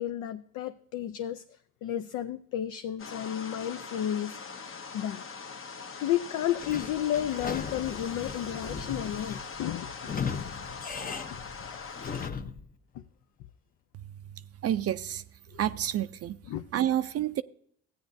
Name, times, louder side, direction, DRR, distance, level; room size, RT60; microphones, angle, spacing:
voice 1, 0.0-1.4 1.8-4.4 4.9-5.2 6.0-9.9 11.6-12.0 15.5-15.6 16.5-16.6, left 11 dB, 85° left, 0.5 m, -32 dB
sound 1, 3.0-12.3, left 5 dB, 45° left, 0.9 m, -42 dB
Sliding door / Squeak, 6.6-12.7, left 6 dB, 30° left, 0.6 m, -37 dB
voice 2, 14.6-15.2 15.6-16.4 16.7-17.4, right 11 dB, 55° right, 0.4 m, -28 dB
14.5 x 9.3 x 2.6 m
cardioid pair, 90°, 30 cm